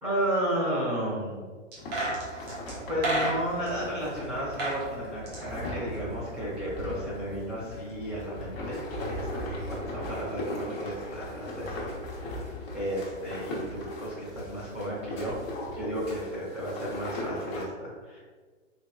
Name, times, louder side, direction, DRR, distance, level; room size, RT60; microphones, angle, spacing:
voice 1, 0.0-1.5 2.9-11.9 12.2-12.4 12.7-15.4 15.7-18.2, equal, 15° right, -9 dB, 1.2 m, -33 dB
sound 1, 1.7-3.7 4.4-4.8 5.1-6.5 6.7-6.8, right 2 dB, 30° right, 1.1 m, -31 dB
sound 2, 1.8-17.7, left 1 dB, 50° left, 1.1 m, -38 dB
3.7 x 3.3 x 2.3 m, 1.5 s
hypercardioid pair, 140°, 38 cm